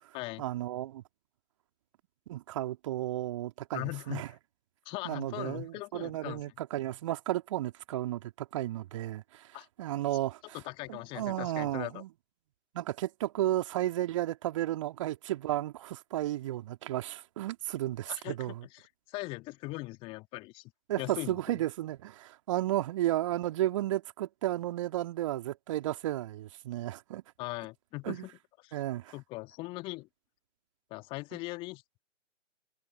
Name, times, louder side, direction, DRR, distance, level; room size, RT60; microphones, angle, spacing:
voice 1, 0.4-1.0 2.3-4.3 5.0-9.4 9.8-10.6 10.9-12.1 12.7-18.7 20.9-27.2 28.0-28.3 28.7-29.1, right 14 dB, 25° right, 2.9 m, -33 dB
voice 2, 3.7-4.4 4.9-6.4 9.5-9.7 10.5-12.0 18.1-20.6 21.0-21.6 27.4-28.3 28.6-28.8 29.1-30.1 30.9-31.8, left 22 dB, 15° left, 2.3 m, -40 dB
figure-of-eight pair, 140°, 37 cm